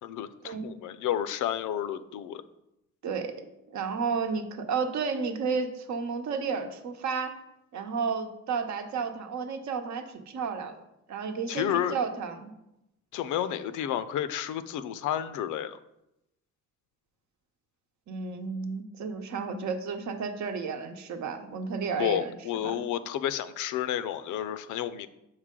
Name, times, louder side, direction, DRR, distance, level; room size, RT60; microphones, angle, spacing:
voice 1, 0.0-2.4 11.5-12.0 13.1-15.8 22.0-25.1, left 10 dB, 85° left, 13 dB, 0.5 m, -31 dB
voice 2, 3.7-7.4 7.7-10.8 11.1-12.5 18.1-22.3 22.6-22.8, right 5 dB, 70° right, 6 dB, 0.9 m, -32 dB
6.5 x 4.8 x 3.7 m, 0.87 s
cardioid pair, 90°, 30 cm